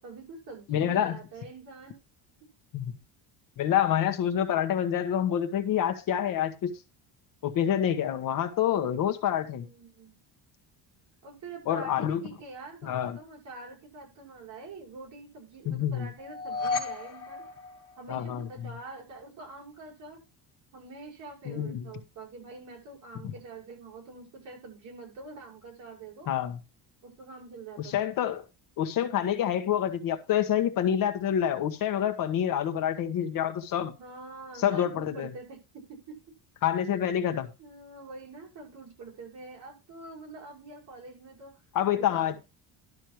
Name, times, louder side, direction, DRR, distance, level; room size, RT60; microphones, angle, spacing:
voice 1, 0.0-2.0 9.2-10.2 11.2-17.5 18.0-20.2 20.7-26.3 27.0-28.0 34.0-36.2 37.6-41.6 41.9-42.4, right 3 dB, 40° right, 6.4 m, -45 dB
voice 2, 0.7-1.2 2.7-2.8 3.6-6.7 7.4-9.7 11.7-12.2 12.8-13.2 15.7-16.1 18.1-18.5 21.5-21.9 26.3-26.6 27.8-28.4 28.8-33.9 34.6-35.3 36.6-37.5 41.7-42.4, left 10 dB, 50° left, 1.3 m, -27 dB
sound 1, 16.2-18.5, left 4 dB, 35° left, 2.9 m, -34 dB
12.0 x 6.3 x 4.6 m
cardioid pair, 170°, 41 cm